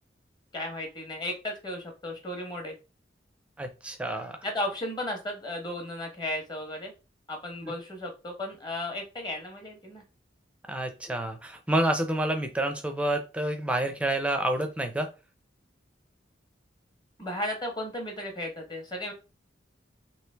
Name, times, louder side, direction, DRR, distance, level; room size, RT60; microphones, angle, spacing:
voice 1, 0.5-2.7 4.4-6.9 7.3-10.0 17.2-19.1, left 1 dB, 25° left, 2 dB, 0.9 m, -35 dB
voice 2, 3.6-4.4 7.6-7.7 10.7-15.1, right 1 dB, 5° right, 6 dB, 0.5 m, -28 dB
3.2 x 2.9 x 3.3 m, 0.30 s
head